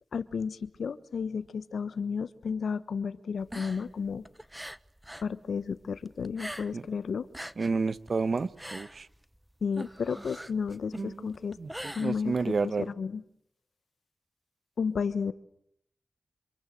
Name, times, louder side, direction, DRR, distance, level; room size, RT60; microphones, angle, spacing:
voice 1, 0.1-4.3 5.2-7.3 9.6-11.6 11.9-13.2 14.8-15.3, left 6 dB, 80° left, 15 dB, 1.2 m, -32 dB
sound 1, 3.4-5.3 5.6-6.9 7.2-12.6, equal, 5° right, 1.0 m, -43 dB
voice 2, 7.6-9.1 10.9-11.3 11.6-12.9, right 4 dB, 60° right, 15 dB, 1.2 m, -30 dB
26.5 x 26.5 x 7.8 m, 0.73 s
cardioid pair, 40°, 0 cm